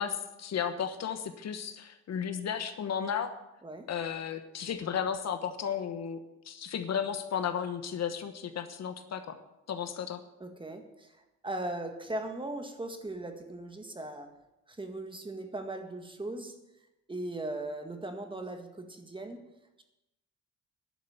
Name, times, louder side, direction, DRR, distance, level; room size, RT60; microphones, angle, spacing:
voice 1, 0.0-3.4 3.9-6.2 6.4-9.4 9.7-10.2, left 8 dB, 60° left, 9 dB, 1.2 m, -34 dB
voice 2, 10.4-11.1 11.4-14.3 14.7-16.6 17.1-19.4, right 2 dB, 15° right, 5 dB, 1.9 m, -38 dB
11.5 x 6.7 x 9.5 m, 0.94 s
cardioid pair, 90°, 30 cm